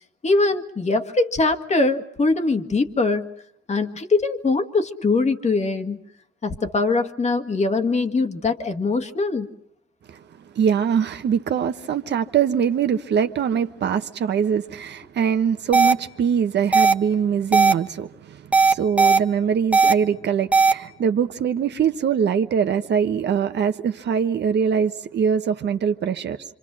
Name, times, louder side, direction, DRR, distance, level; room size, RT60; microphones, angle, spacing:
voice 1, 0.2-3.3 3.7-6.0 6.4-9.5, left 3 dB, 35° left, 1.8 m, -22 dB
voice 2, 10.5-26.4, right 7 dB, 60° right, 1.2 m, -23 dB
sound 1, 15.7-15.9 16.7-16.9 17.5-17.7 18.5-19.2 19.7-19.9 20.5-20.7, right 4 dB, 5° right, 1.1 m, -15 dB
27.0 x 25.5 x 6.2 m
cardioid pair, 90°, 20 cm